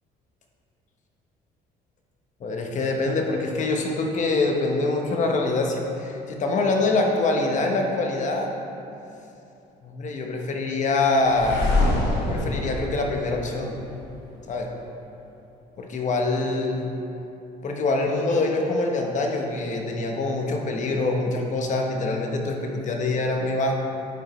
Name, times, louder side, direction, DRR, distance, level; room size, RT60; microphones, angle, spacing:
voice 1, 2.4-8.5 9.8-11.8 12.2-13.7 14.5-14.7 15.8-16.9 17.6-23.7, left 2 dB, 45° left, 1 dB, 0.9 m, -25 dB
sound 1, 11.3-14.2, left 2 dB, 90° left, 1.0 m, -25 dB
9.2 x 5.1 x 3.1 m, 2.8 s
cardioid pair, 110°, 17 cm